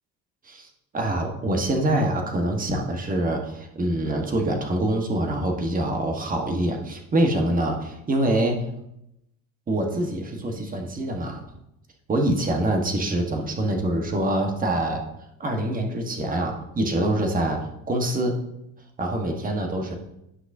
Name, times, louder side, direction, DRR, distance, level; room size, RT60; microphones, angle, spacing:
voice 1, 0.9-8.6 9.7-11.4 12.1-15.0 15.4-17.6 17.9-18.4 19.0-19.9, right 1 dB, 25° right, 3 dB, 1.3 m, -25 dB
11.0 x 5.8 x 2.7 m, 0.83 s
cardioid pair, 110°, 34 cm